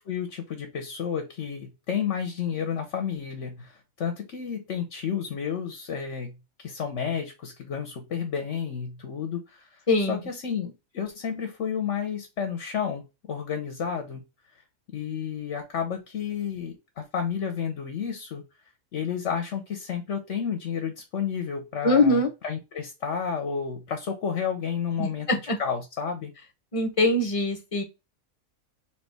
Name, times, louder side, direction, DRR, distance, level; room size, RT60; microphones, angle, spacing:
voice 1, 0.1-6.3 6.6-9.7 10.0-14.2 14.9-18.4 18.9-25.3 25.6-26.3, left 7 dB, 55° left, 5 dB, 1.0 m, -31 dB
voice 2, 9.9-10.2 21.8-22.3 25.0-25.6 26.7-27.8, left 2 dB, 30° left, 3 dB, 0.7 m, -23 dB
4.2 x 3.0 x 3.4 m, 0.26 s
omnidirectional pair, 1.7 m